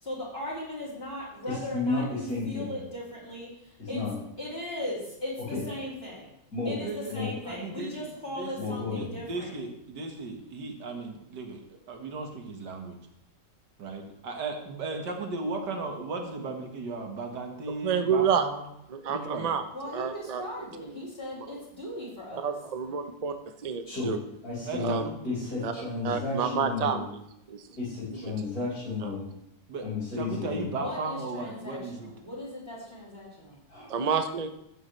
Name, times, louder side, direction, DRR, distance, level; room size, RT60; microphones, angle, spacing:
voice 1, 0.0-3.5 3.9-4.0 4.4-6.3 6.6-9.6 19.7-22.5 30.7-33.6, left 1 dB, 30° left, -7 dB, 4.4 m, -38 dB
voice 2, 1.5-2.7 3.8-4.2 5.4-5.6 6.5-6.8 7.1-7.3 8.6-9.1 23.9-24.2 24.4-27.1 27.8-29.3 29.8-30.8 33.7-33.9, left 3 dB, 55° left, -6 dB, 5.3 m, -32 dB
voice 3, 6.8-7.1 7.5-13.0 13.8-18.7 19.1-19.5 24.7-25.5 29.7-29.8 30.2-32.1, right 3 dB, 70° right, 3 dB, 2.0 m, -36 dB
voice 4, 17.8-18.4 18.9-19.6 19.9-20.4 20.9-21.1 22.3-23.3 23.6-24.2 24.8-25.1 25.6-27.1 27.5-27.6 28.1-28.3 29.0-29.1 33.9-34.5, right 7 dB, 85° right, 7 dB, 0.3 m, -29 dB
13.5 x 9.0 x 3.2 m, 0.78 s
omnidirectional pair, 1.9 m